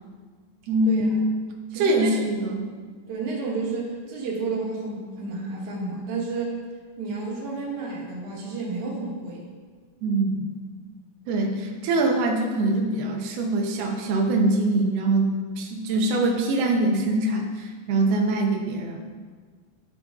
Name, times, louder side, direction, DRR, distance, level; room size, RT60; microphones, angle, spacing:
voice 1, 0.7-1.0 1.7-2.7 10.0-10.5 11.3-19.0, right 2 dB, 85° right, 1 dB, 1.4 m, -23 dB
voice 2, 1.7-2.4 3.1-6.6 7.0-9.4, right 3 dB, 65° right, -2 dB, 2.5 m, -31 dB
11.0 x 3.9 x 3.5 m, 1.6 s
omnidirectional pair, 3.9 m